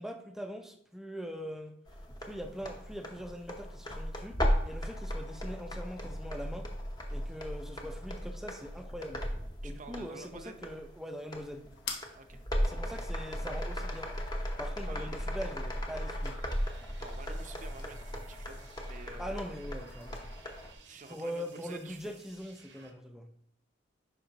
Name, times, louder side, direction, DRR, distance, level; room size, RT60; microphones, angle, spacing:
voice 1, 0.0-1.8 2.2-6.7 7.1-9.2 9.6-11.7 12.6-14.1 14.6-16.4 19.2-20.2 21.1-23.3, equal, ahead, 5 dB, 0.6 m, -42 dB
sound 1, 1.9-20.7, equal, 20° left, 0.9 m, -36 dB
voice 2, 9.6-10.6 12.1-12.4 14.9-15.1 17.0-19.5 20.8-22.1, right 3 dB, 40° right, 7 dB, 0.6 m, -49 dB
sound 2, 11.7-20.3, left 4 dB, 70° left, 1.0 m, -49 dB
sound 3, 16.3-22.9, right 5 dB, 75° right, 1.0 m, -57 dB
11.0 x 5.0 x 2.9 m, 0.70 s
head